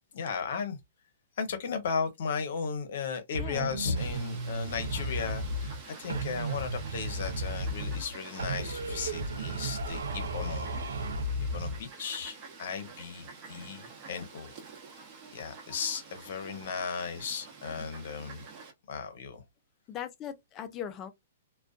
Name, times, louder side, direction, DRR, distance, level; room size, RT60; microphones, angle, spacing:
voice 1, 0.1-0.8 1.4-10.7 11.5-14.5 15.3-18.4 18.9-19.4, left 6 dB, 65° left, 0.7 m, -35 dB
sound 1, 3.3-5.8 6.1-8.1 8.4-11.8, right 1 dB, 85° right, 0.5 m, -34 dB
voice 2, 3.4-3.8 19.9-21.1, left 9 dB, 25° left, 0.4 m, -39 dB
Fowl, 4.0-18.7, right 4 dB, 35° right, 0.9 m, -48 dB
2.4 x 2.2 x 2.3 m
hypercardioid pair, 140°, 0 cm